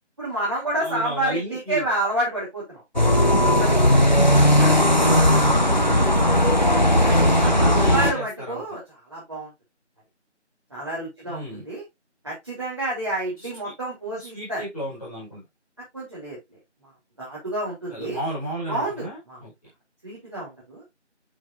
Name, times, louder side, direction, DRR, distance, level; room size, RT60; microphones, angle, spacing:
voice 1, 0.2-2.8 3.4-4.0 4.5-4.8 7.0-8.8 9.1-9.5 10.7-11.8 12.2-14.6 15.9-16.4 17.2-18.2 18.7-19.4 20.0-20.8, right 1 dB, 25° right, -8 dB, 3.6 m, -29 dB
voice 2, 0.8-1.8 4.0-6.6 6.8-8.6 11.3-11.6 13.4-13.7 14.1-15.4 17.9-19.5, right 1 dB, 5° left, -19 dB, 3.3 m, -34 dB
sound 1, 3.0-8.1, equal, 40° left, 0.9 m, -17 dB
7.1 x 6.0 x 2.6 m, 0.18 s
figure-of-eight pair, 175°, 36 cm